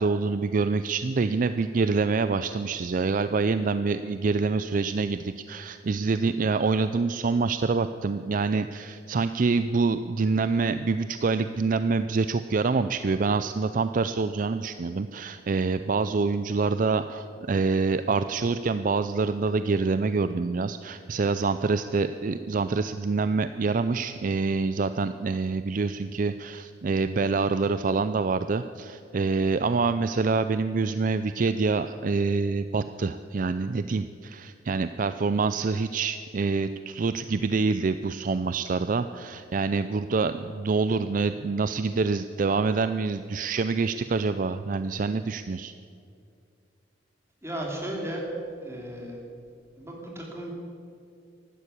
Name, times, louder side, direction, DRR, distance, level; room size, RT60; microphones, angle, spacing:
voice 1, 0.0-45.7, right 4 dB, 45° right, 11 dB, 0.4 m, -26 dB
voice 2, 47.4-48.2 48.6-49.2 49.8-50.5, right 1 dB, 15° right, -1 dB, 3.1 m, -35 dB
14.5 x 12.0 x 8.4 m, 2.4 s
head